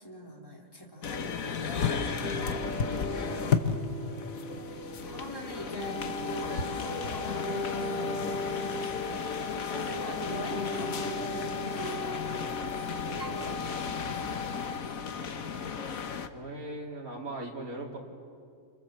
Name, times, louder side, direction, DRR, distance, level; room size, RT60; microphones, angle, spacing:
voice 1, 0.0-1.8 5.1-8.7 9.5-11.9 13.3-14.6, left 1 dB, 15° left, -1 dB, 3.4 m, -44 dB
sound 1, 1.0-16.3, left 6 dB, 75° left, 1.6 m, -34 dB
sound 2, 2.2-13.6, left 1 dB, 45° right, 3.7 m, -38 dB
voice 2, 2.6-3.2 16.3-18.0, right 2 dB, 80° right, -1 dB, 4.0 m, -40 dB
sound 3, 5.8-14.8, left 5 dB, 45° left, 1.7 m, -40 dB
29.5 x 25.5 x 7.6 m, 2.3 s
omnidirectional pair, 1.5 m